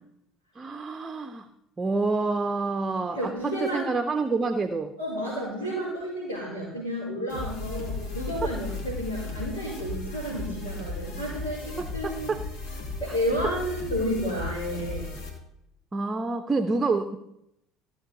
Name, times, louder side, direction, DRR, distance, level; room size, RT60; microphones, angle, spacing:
voice 1, 0.6-1.5 1.8-4.9 11.8-12.4 15.9-17.2, right 3 dB, 25° right, 8 dB, 0.7 m, -28 dB
voice 2, 3.1-3.9 5.0-12.3 13.0-15.1, equal, 80° left, -10 dB, 4.9 m, -31 dB
sound 1, 7.3-15.3, left 3 dB, 60° left, 2.4 m, -36 dB
15.0 x 7.1 x 4.1 m, 0.80 s
figure-of-eight pair, 65°, 0 cm